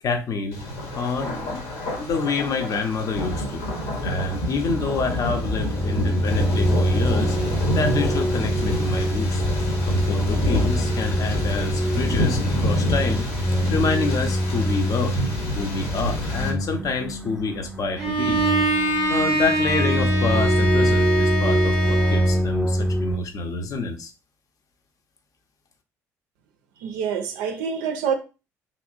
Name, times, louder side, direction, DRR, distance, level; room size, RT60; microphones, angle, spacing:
voice 1, 0.0-0.6 0.9-1.6 2.0-3.6 4.0-7.4 7.7-9.4 9.8-13.3 13.7-15.2 15.5-18.4 19.1-24.1, left 4 dB, 45° left, 0.6 m, -27 dB
Thunder, 0.5-16.5, left 1 dB, 70° left, 0.9 m, -27 dB
sound 1, 4.4-23.2, equal, ahead, 0.5 m, -24 dB
Bowed string instrument, 18.0-22.4, right 2 dB, 90° left, 1.8 m, -24 dB
voice 2, 26.8-28.2, right 7 dB, 65° right, 0.4 m, -26 dB
3.0 x 2.9 x 2.4 m
figure-of-eight pair, 50°, 8 cm